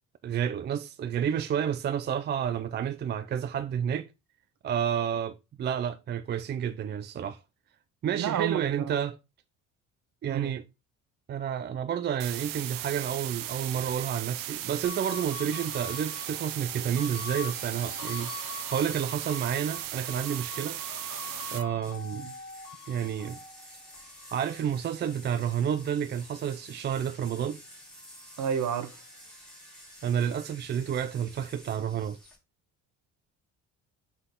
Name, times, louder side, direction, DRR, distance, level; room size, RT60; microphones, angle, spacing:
voice 1, 0.2-4.1 4.6-7.4 8.0-9.2 10.2-10.6 11.3-18.3 18.7-20.8 21.5-22.3 22.9-23.4 24.3-27.6 30.0-32.2, right 9 dB, 35° right, 0.4 m, -30 dB
voice 2, 8.1-8.9 10.3-10.5 22.1-22.3 28.4-28.9, right 8 dB, 60° right, 1.1 m, -30 dB
sound 1, 12.2-21.6, right 13 dB, 85° right, 0.7 m, -37 dB
sound 2, 14.8-27.5 27.9-29.5, left 9 dB, 55° left, 1.6 m, -45 dB
sound 3, 21.8-32.4, equal, ahead, 2.5 m, -51 dB
7.7 x 4.1 x 3.7 m
cardioid pair, 130°, 32 cm